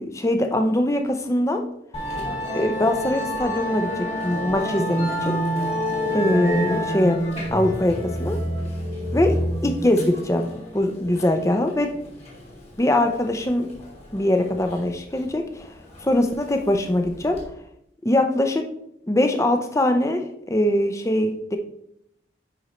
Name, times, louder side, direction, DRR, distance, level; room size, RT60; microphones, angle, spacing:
voice 1, 0.0-1.6 2.5-5.4 6.1-7.2 7.5-8.4 9.1-9.4 9.6-11.9 12.8-13.7 14.1-15.7 16.0-17.4 18.0-18.6 19.1-21.6, left 1 dB, 15° left, 5 dB, 0.5 m, -22 dB
Musical instrument, 1.9-17.4, equal, 35° left, 2.0 m, -29 dB
10.0 x 4.3 x 3.1 m, 0.77 s
head